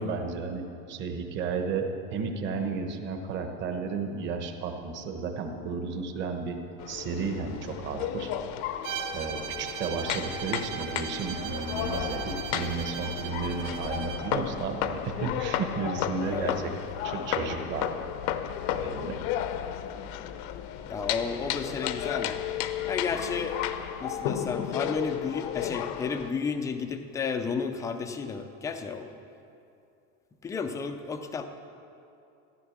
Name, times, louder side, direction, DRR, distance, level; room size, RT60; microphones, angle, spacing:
voice 1, 0.0-6.6 6.9-8.3 9.1-16.7 17.0-17.9 18.8-19.2, right 4 dB, 35° right, 5 dB, 1.2 m, -33 dB
sound 1, 6.8-26.3, left 10 dB, 55° left, 0.7 m, -33 dB
Bowed string instrument, 8.8-14.3, right 9 dB, 55° right, 1.8 m, -38 dB
sound 2, 11.9-23.9, left 9 dB, 90° left, 1.4 m, -46 dB
voice 2, 16.2-16.6 20.1-20.3 20.9-22.4 22.8-23.6 24.0-29.1 30.4-31.5, left 5 dB, 10° left, 6 dB, 0.4 m, -32 dB
14.5 x 11.0 x 7.2 m, 2.6 s
cardioid pair, 175°, 34 cm